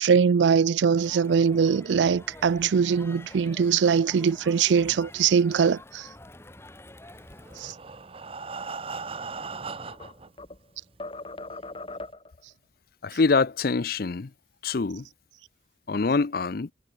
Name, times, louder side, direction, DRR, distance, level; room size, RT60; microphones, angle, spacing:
voice 1, 0.0-6.0 7.6-7.7, right 6 dB, 85° right, 0.4 m, -22 dB
Crowd, 0.9-7.7, left 1 dB, 15° left, 1.6 m, -47 dB
Breathing, 7.3-10.3 11.0-11.1 11.5-11.6 12.0-12.1, right 4 dB, 30° right, 1.0 m, -38 dB
sound 1, 9.4-10.6 11.0-12.4, left 2 dB, 30° left, 3.2 m, -40 dB
voice 2, 13.0-14.3 14.6-15.1 15.9-16.7, left 4 dB, 55° left, 0.6 m, -25 dB
head